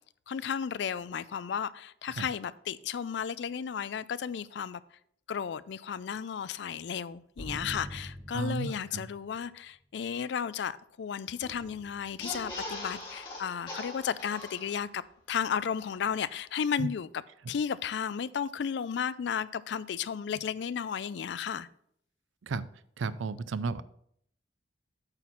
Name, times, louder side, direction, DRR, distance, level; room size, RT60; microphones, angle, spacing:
voice 1, 0.3-4.8 5.3-15.0 15.3-17.1 17.5-21.7, left 7 dB, 65° left, 0.3 m, -34 dB
sound 1, 7.4-9.2 11.4-12.4, right 1 dB, 20° right, 0.9 m, -44 dB
voice 2, 8.3-9.0 16.8-16.9 22.4-22.7 23.0-23.8, right 4 dB, 85° right, 0.4 m, -33 dB
sound 2, 12.2-15.1 15.4-15.5 15.7-15.9, left 2 dB, 25° left, 2.2 m, -41 dB
8.9 x 4.2 x 5.7 m
head